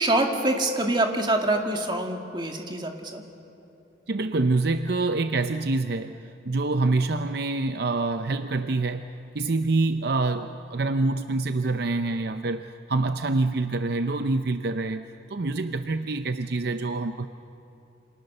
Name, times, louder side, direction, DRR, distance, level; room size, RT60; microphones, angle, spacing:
voice 1, 0.0-3.2, right 2 dB, 25° right, 3 dB, 2.1 m, -25 dB
voice 2, 4.1-9.0 9.3-17.3, right 3 dB, 55° right, 9 dB, 0.6 m, -26 dB
28.0 x 26.5 x 6.7 m, 2.9 s
head